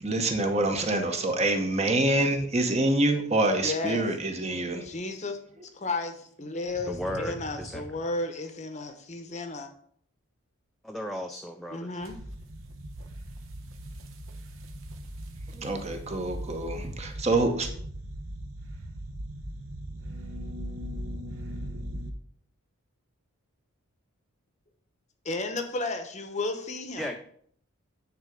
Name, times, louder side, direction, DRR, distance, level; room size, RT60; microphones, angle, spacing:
voice 1, 0.0-4.8 15.5-17.7, right 2 dB, 30° right, 5 dB, 0.8 m, -26 dB
voice 2, 3.6-4.0 4.8-5.4 5.7-9.7 11.7-12.1 25.2-27.2, left 2 dB, 30° left, 7 dB, 0.8 m, -33 dB
voice 3, 6.9-7.8 10.8-11.9 27.0-27.2, equal, ahead, 3 dB, 0.3 m, -35 dB
sound 1, 12.0-22.1, right 1 dB, 65° right, 0.9 m, -39 dB
9.6 x 3.7 x 5.1 m, 0.62 s
head